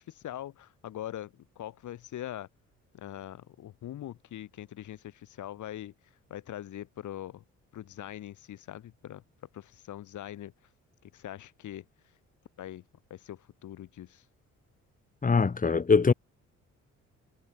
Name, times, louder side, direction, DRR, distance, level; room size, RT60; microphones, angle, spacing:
voice 1, 0.0-2.5 2.9-5.9 6.3-7.4 7.7-9.2 9.5-10.5 11.0-11.9 12.6-12.8 13.1-14.2, left 12 dB, 75° left, 6.1 m, -42 dB
voice 2, 15.2-16.1, left 5 dB, 25° left, 1.5 m, -22 dB
cardioid pair, 90°, 30 cm